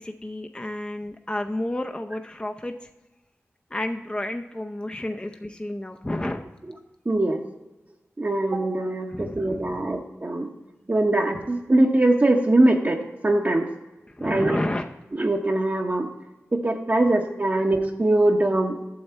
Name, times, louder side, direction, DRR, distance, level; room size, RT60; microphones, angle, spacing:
voice 1, 0.0-2.7 3.7-6.5 9.1-9.7 14.2-14.9, left 1 dB, 20° left, 4 dB, 0.6 m, -30 dB
voice 2, 7.1-7.4 8.2-10.5 10.9-13.7 14.2-14.6 15.1-16.1 16.5-18.9, right 2 dB, 40° right, 0 dB, 0.9 m, -22 dB
8.7 x 7.1 x 4.5 m, 1.0 s
cardioid pair, 45°, 5 cm